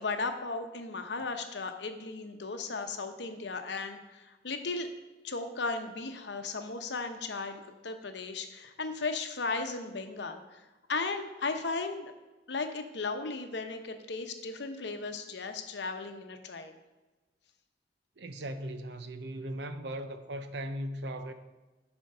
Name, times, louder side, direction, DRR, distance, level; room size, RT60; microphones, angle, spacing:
voice 1, 0.0-4.9 5.2-10.6 10.9-12.1 12.5-16.8, left 3 dB, 70° left, 0.8 m, -36 dB
voice 2, 18.2-21.3, right 1 dB, 65° right, 0.6 m, -38 dB
10.5 x 4.4 x 5.4 m
head